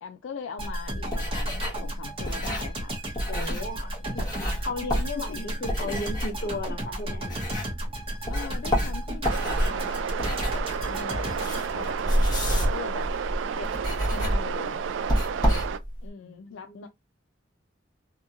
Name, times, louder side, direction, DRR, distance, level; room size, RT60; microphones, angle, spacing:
voice 1, 0.0-3.0 5.1-5.4 8.3-12.0 12.5-13.1 13.6-13.7 14.0-14.8 16.0-16.9, left 6 dB, 80° left, 0.4 m, -41 dB
sound 1, 0.6-7.9 8.2-16.1, equal, 20° left, 1.1 m, -29 dB
sound 2, 0.6-12.6 12.9-13.1, right 1 dB, 30° right, 1.0 m, -35 dB
voice 2, 3.3-7.4 16.2-16.9, left 2 dB, 55° left, 0.9 m, -36 dB
sound 3, 9.2-15.8, right 7 dB, 70° right, 0.3 m, -31 dB
2.9 x 2.6 x 2.4 m
head